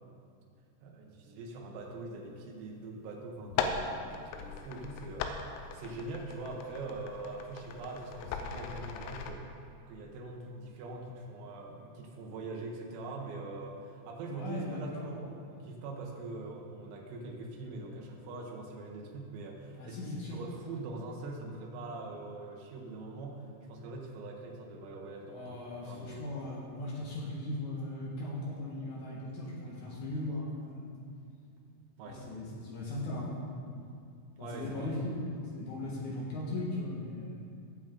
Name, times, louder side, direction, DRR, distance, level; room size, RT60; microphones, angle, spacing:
voice 1, 0.8-5.3 5.7-9.4 9.9-26.3 32.0-32.2 34.4-35.1, right 3 dB, 85° right, -1 dB, 3.9 m, -43 dB
sound 1, 3.4-9.3, left 6 dB, 85° left, 3.4 m, -38 dB
voice 2, 14.3-15.1 19.7-20.4 25.3-30.9 32.1-33.3 34.4-37.4, left 1 dB, 65° left, -5 dB, 1.9 m, -38 dB
17.0 x 7.6 x 3.9 m, 2.3 s
omnidirectional pair, 5.8 m